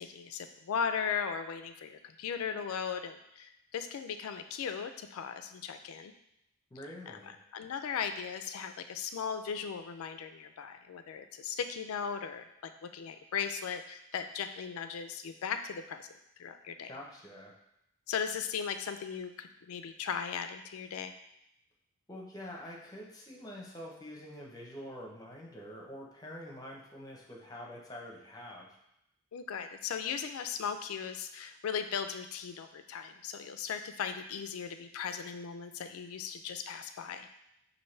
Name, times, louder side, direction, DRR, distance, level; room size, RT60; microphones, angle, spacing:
voice 1, 0.0-6.1 7.1-16.1 16.4-16.9 18.1-21.1 29.3-37.3, left 7 dB, 85° left, 8 dB, 0.4 m, -37 dB
voice 2, 6.7-7.4 16.9-17.5 22.1-28.7, equal, 15° left, -2 dB, 0.7 m, -46 dB
5.5 x 2.6 x 3.2 m, 0.80 s
head